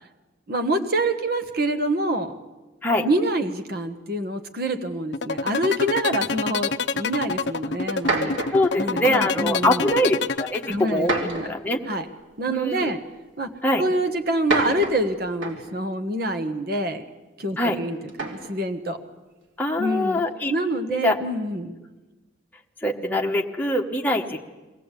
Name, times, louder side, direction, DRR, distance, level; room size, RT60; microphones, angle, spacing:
voice 1, 0.5-2.3 3.0-8.4 8.8-9.9 10.7-11.5 11.9-12.1 12.4-13.0 13.4-13.5 13.8-17.0 17.4-19.0 19.8-20.2 20.5-21.7, right 1 dB, 50° right, 7 dB, 1.4 m, -26 dB
sound 1, 5.1-11.1, left 4 dB, 60° left, 0.6 m, -26 dB
sound 2, 7.3-7.4 7.9-8.7 9.6-10.0 11.0-11.7 12.8-12.9 14.3-15.8 18.1-18.6, right 2 dB, 85° right, 3.0 m, -28 dB
voice 2, 8.5-11.8 12.5-12.9 13.6-13.8 17.6-17.8 19.6-20.5 20.9-21.2 22.8-24.4, left 1 dB, 10° left, 1 dB, 1.2 m, -23 dB
22.0 x 16.5 x 8.3 m, 1.2 s
head